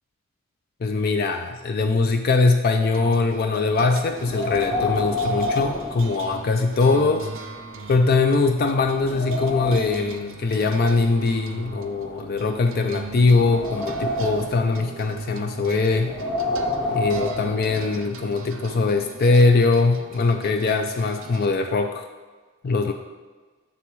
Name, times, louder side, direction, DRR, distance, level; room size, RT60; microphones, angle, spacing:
voice 1, 0.8-7.3 7.9-16.1 16.9-22.1 22.6-22.9, left 3 dB, 45° left, 5 dB, 0.3 m, -21 dB
sound 1, 2.9-21.5, right 4 dB, 60° right, 0.5 m, -40 dB
Wind, 4.1-6.8 7.1-7.2 7.9-8.0 8.5-10.1 10.9-12.5 13.0-14.7 15.9-18.0, left 2 dB, 20° left, 0.7 m, -29 dB
6.9 x 6.8 x 3.1 m, 1.4 s
head